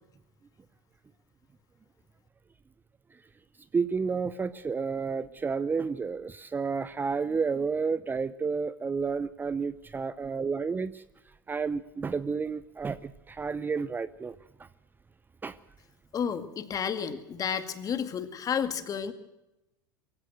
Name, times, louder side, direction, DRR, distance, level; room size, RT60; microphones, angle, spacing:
voice 1, 3.7-11.0 11.5-14.4 15.4-15.6, right 5 dB, 15° right, 15 dB, 0.7 m, -31 dB
voice 2, 16.1-19.1, left 7 dB, 30° left, 10 dB, 2.1 m, -31 dB
22.5 x 15.5 x 7.8 m, 0.95 s
hypercardioid pair, 85°, 11 cm